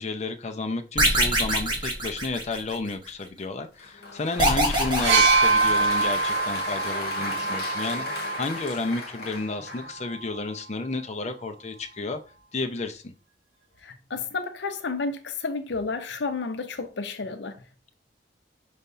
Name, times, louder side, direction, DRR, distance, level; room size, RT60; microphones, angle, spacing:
voice 1, 0.0-12.2 12.5-13.1, left 3 dB, 40° left, 0.6 m, -32 dB
sound 1, 1.0-2.9 4.4-6.2, right 1 dB, 25° right, 1.4 m, -24 dB
Applause, 3.8-10.0, left 2 dB, 60° left, 1.3 m, -34 dB
sound 2, 5.0-8.8 9.9-10.0, right 4 dB, 75° right, 1.2 m, -24 dB
voice 2, 13.8-17.6, left 4 dB, 80° left, 0.7 m, -31 dB
5.5 x 3.4 x 2.6 m
head